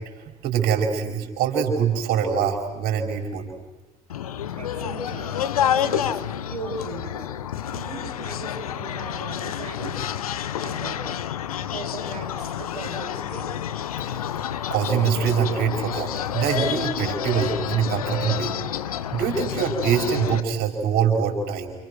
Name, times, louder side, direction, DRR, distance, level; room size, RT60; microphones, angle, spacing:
voice 1, 0.4-3.5 14.7-18.5 19.1-21.7, right 7 dB, 60° right, 3 dB, 5.1 m, -24 dB
sound 1, 4.1-20.4, left 9 dB, 80° left, 0.8 m, -29 dB
voice 2, 4.5-7.3 7.7-10.1 10.6-11.1 11.7-13.5, right 3 dB, 80° right, -3 dB, 3.6 m, -38 dB
30.0 x 29.0 x 6.3 m, 1.1 s
figure-of-eight pair, 50°, 18 cm